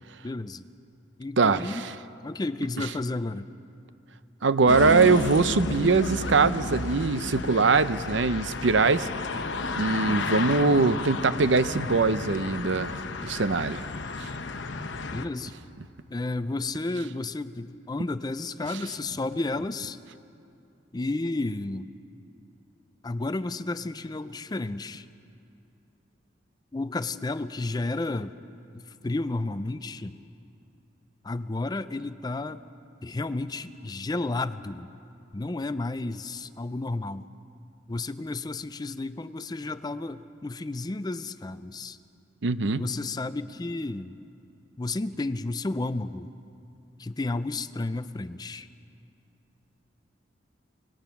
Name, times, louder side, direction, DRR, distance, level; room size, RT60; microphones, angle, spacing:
voice 1, 0.2-0.7 1.2-1.9 2.2-3.5 15.1-15.5 16.1-20.0 20.9-21.9 23.0-25.1 26.7-28.3 28.7-30.2 31.2-32.6 33.0-34.9 35.3-37.3 37.9-42.0 42.8-44.2 44.8-46.3 47.0-48.7, left 2 dB, 20° left, 13 dB, 0.4 m, -32 dB
voice 2, 1.4-1.9 4.4-9.1 9.7-13.9 14.2-14.3 42.4-42.9, right 4 dB, 70° right, 13 dB, 0.7 m, -22 dB
sound 1, 4.7-15.3, left 3 dB, 70° left, 0.9 m, -32 dB
25.0 x 19.5 x 5.9 m, 2.7 s
head